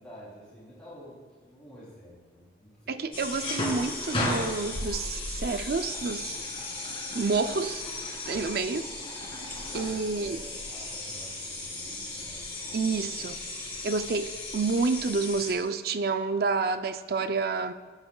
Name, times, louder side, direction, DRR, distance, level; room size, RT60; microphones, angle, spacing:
voice 1, 0.0-3.0 9.6-13.1 13.6-14.0, equal, 5° left, -9 dB, 3.0 m, -49 dB
voice 2, 2.9-6.4 7.1-7.8 8.3-8.9 9.7-10.4 12.7-13.4 13.8-17.7, right 4 dB, 55° right, 10 dB, 0.4 m, -29 dB
sound 1, 3.1-15.5, left 2 dB, 30° left, 2.0 m, -35 dB
17.0 x 8.1 x 2.3 m, 1.4 s
head